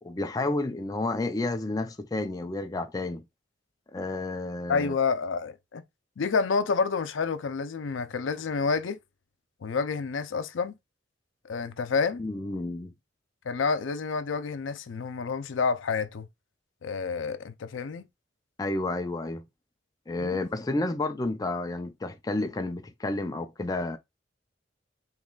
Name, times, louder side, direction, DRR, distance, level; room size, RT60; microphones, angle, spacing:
voice 1, 0.0-3.3 3.9-4.9 12.2-12.9 18.6-19.4 20.1-24.0, left 2 dB, 20° left, 0.3 m, -31 dB
voice 2, 4.7-5.8 6.2-9.0 9.6-10.8 11.4-12.2 13.5-16.3 16.8-18.1 20.2-20.4, left 5 dB, 85° left, 0.5 m, -29 dB
3.8 x 3.0 x 2.3 m
head